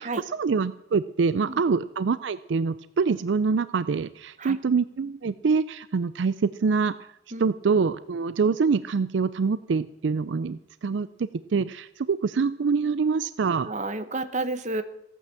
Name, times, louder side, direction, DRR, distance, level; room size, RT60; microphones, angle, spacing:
voice 1, 0.0-6.9 7.4-13.7, right 5 dB, 75° right, 16 dB, 0.4 m, -25 dB
voice 2, 13.6-14.8, right 2 dB, 40° right, 11 dB, 1.1 m, -30 dB
15.0 x 9.2 x 7.5 m, 0.79 s
head